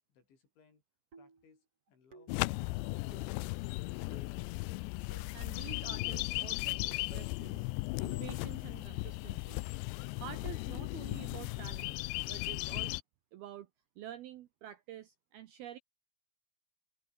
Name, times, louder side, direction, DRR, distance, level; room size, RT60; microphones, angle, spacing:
voice 1, 0.1-0.8 1.2-4.4, left 5 dB, 70° left, 8.5 m, -66 dB
sound 1, 1.1-1.5 2.1-2.5 3.1-3.4 4.1-4.4 5.1-5.4 6.1-6.4 7.1-7.4 8.1-8.4, right 4 dB, 30° right, 5.4 m, -57 dB
sound 2, 2.3-13.0, left 24 dB, 90° left, 2.5 m, -37 dB
voice 2, 5.3-9.6 10.2-12.0 12.3-12.9 13.3-13.7 14.0-15.8, right 11 dB, 75° right, 2.4 m, -49 dB
omnidirectional pair, 5.6 m